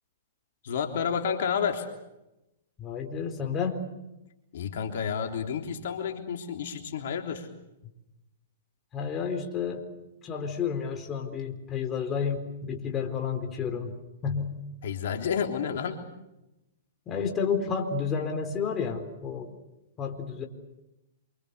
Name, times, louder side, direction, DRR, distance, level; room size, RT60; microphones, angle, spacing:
voice 1, 0.6-1.9 4.5-7.5 14.8-16.0, left 7 dB, 65° left, 4 dB, 3.4 m, -30 dB
voice 2, 2.8-3.8 8.9-9.8 10.2-13.9 14.2-14.5 17.1-19.5 20.0-20.5, left 6 dB, 25° left, 4 dB, 4.2 m, -31 dB
28.0 x 25.5 x 6.9 m, 0.93 s
hypercardioid pair, 125°, 0 cm